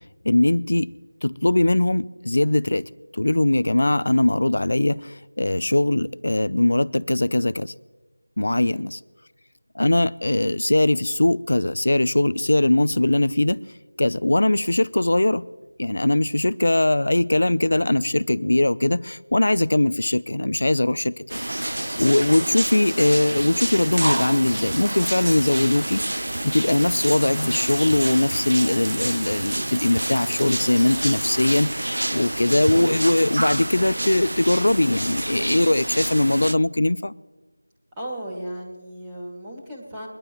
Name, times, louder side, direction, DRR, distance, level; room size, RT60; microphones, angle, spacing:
voice 1, 0.2-0.9 1.2-2.8 3.1-7.7 8.4-9.0 9.7-13.6 14.0-15.4 15.8-21.2 21.6-37.1, left 1 dB, 60° left, 0.6 m, -21 dB
voice 2, 8.5-8.9 37.9-40.1, right 1 dB, 10° right, 2.4 m, -36 dB
sound 1, 21.3-36.5, right 1 dB, 75° right, 0.4 m, -28 dB
Frying (food), 24.1-31.6, right 3 dB, 25° right, 1.0 m, -39 dB
23.0 x 12.0 x 3.1 m
figure-of-eight pair, 175°, 0 cm